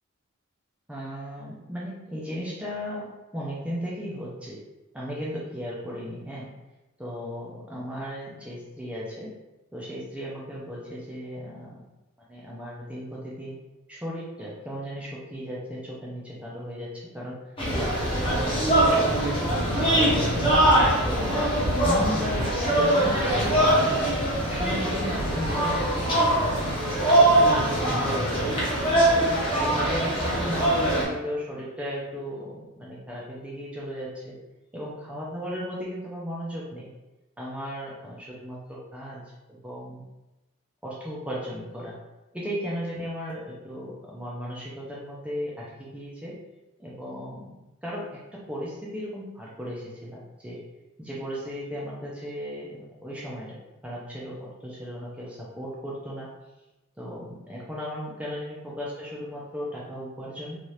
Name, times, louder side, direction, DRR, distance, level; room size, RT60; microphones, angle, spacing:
voice 1, 0.9-3.1 3.3-4.6 4.9-6.5 7.0-9.3 9.7-11.8 12.3-13.6 13.9-17.4 17.7-20.5 21.0-21.5 21.8-24.1 24.5-28.5 29.2-34.3 34.7-36.9 37.4-39.2 39.6-40.0 40.8-41.9 42.3-46.3 46.8-47.6 47.8-48.0 48.3-50.6 51.0-53.6 53.8-56.3 57.0-60.6, equal, 5° right, -6 dB, 0.4 m, -36 dB
sound 1, 17.6-31.0, right 1 dB, 25° left, 0.8 m, -22 dB
2.7 x 2.4 x 3.2 m, 1.0 s
head